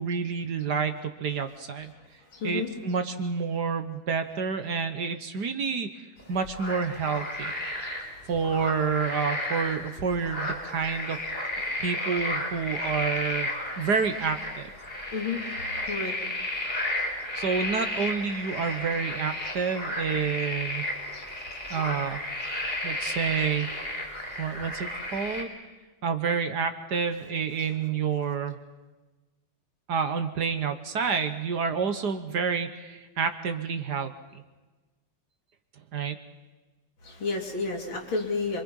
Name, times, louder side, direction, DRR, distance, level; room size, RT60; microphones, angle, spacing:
voice 1, 0.0-1.9 2.4-7.5 7.9-8.0 8.3-11.2 11.8-13.5 13.8-14.7 17.3-20.8 21.7-22.2 22.8-23.7 24.4-25.5 26.0-28.6 29.9-34.4 35.9-36.2, right 6 dB, 55° right, 9 dB, 1.7 m, -29 dB
voice 2, 2.3-2.7 7.8-7.9 15.1-15.4 15.9-16.1 19.5-19.6 21.1-21.2 21.7-21.8 23.0-23.1 27.6-27.7 37.0-38.6, left 4 dB, 70° left, 1 dB, 3.8 m, -31 dB
sound 1, 6.2-25.4, left 1 dB, 25° left, 4.1 m, -33 dB
26.5 x 24.5 x 5.6 m, 1.2 s
omnidirectional pair, 2.2 m